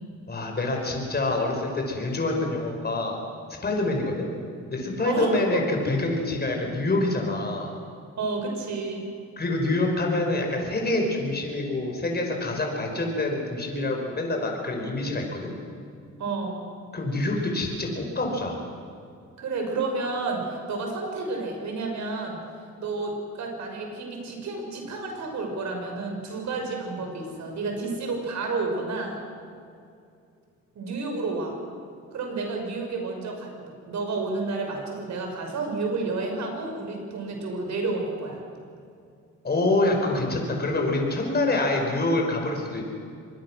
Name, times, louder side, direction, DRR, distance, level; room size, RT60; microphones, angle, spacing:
voice 1, 0.3-3.2 3.6-4.3 4.7-7.7 9.4-15.5 16.9-18.6 39.4-42.8, left 2 dB, 30° left, 2 dB, 5.3 m, -26 dB
voice 2, 5.0-5.6 8.2-9.1 16.2-16.8 19.4-22.4 22.8-29.2 30.7-31.6 32.1-38.4, right 3 dB, 65° right, 2 dB, 5.8 m, -30 dB
25.0 x 20.5 x 6.4 m, 2.4 s
cardioid pair, 90°, 30 cm